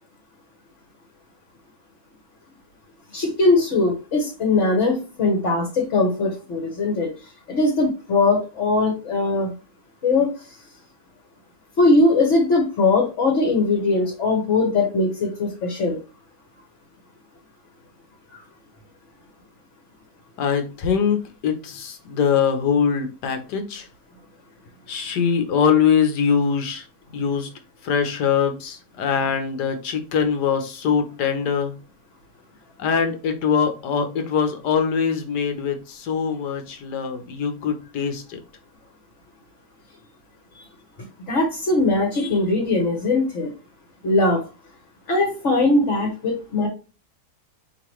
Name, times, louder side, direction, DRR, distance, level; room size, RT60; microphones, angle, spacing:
voice 1, 3.1-7.1 7.5-9.5 10.0-10.3 11.8-16.0 40.6-40.7 41.3-43.5 44.0-44.4 45.1-46.7, left 3 dB, 50° left, 1.4 m, -20 dB
voice 2, 20.4-23.9 24.9-26.9 27.1-27.5 27.8-31.7 32.8-38.4, left 7 dB, 85° left, 1.5 m, -22 dB
5.1 x 3.3 x 3.0 m
omnidirectional pair, 1.7 m